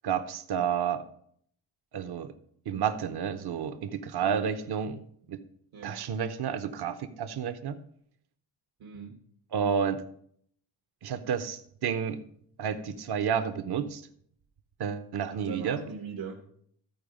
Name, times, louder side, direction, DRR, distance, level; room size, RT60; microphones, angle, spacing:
voice 1, 0.0-1.1 1.9-2.3 2.7-5.0 5.3-5.4 5.8-7.8 9.5-10.0 11.0-12.2 12.6-14.0 14.8-15.8, right 7 dB, 55° right, 9 dB, 0.8 m, -30 dB
voice 2, 5.7-6.0 8.8-9.2 15.3-16.4, right 6 dB, 70° right, 0 dB, 1.3 m, -40 dB
13.5 x 4.7 x 5.1 m, 0.65 s
wide cardioid pair, 120°, 46 cm